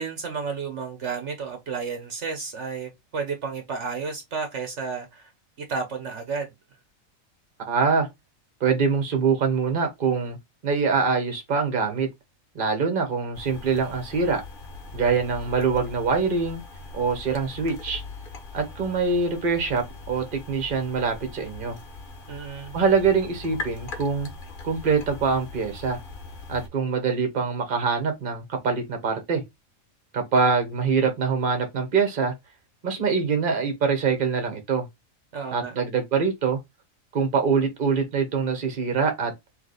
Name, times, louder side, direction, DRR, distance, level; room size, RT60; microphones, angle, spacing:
voice 1, 0.0-5.3 5.7-6.5 22.3-22.8 35.3-35.7, right 5 dB, 60° right, 1.2 m, -32 dB
voice 2, 7.7-8.1 8.6-10.4 10.6-12.1 12.5-14.4 14.9-16.6 16.9-18.0 18.5-21.8 22.7-24.3 24.6-26.0 26.5-29.4 30.1-32.3 32.8-34.8 35.5-36.6 37.1-39.3, right 5 dB, 40° right, 1.2 m, -24 dB
sound 1, 13.3-26.7, left 3 dB, 40° left, 1.1 m, -40 dB
3.3 x 3.2 x 3.9 m
omnidirectional pair, 1.4 m